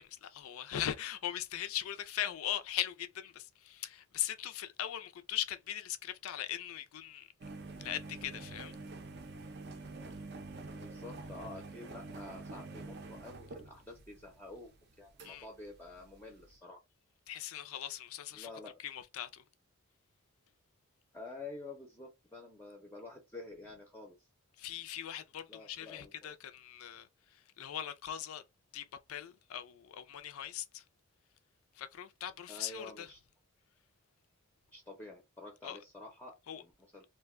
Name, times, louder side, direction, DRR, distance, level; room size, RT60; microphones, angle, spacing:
voice 1, 0.0-7.3 7.8-8.7 15.2-15.5 17.3-18.5 18.8-19.4 24.6-27.1 27.6-28.4 28.7-30.8 31.8-33.1 35.6-35.8 36.5-36.6, left 11 dB, 80° left, 0.4 m, -40 dB
sound 1, 7.4-16.6, right 3 dB, 50° right, 0.5 m, -47 dB
voice 2, 10.7-14.7 15.0-16.8 18.3-18.8 21.1-24.3 25.5-26.4 32.5-33.2 34.7-37.0, left 2 dB, 10° left, 0.5 m, -49 dB
2.5 x 2.2 x 3.5 m
head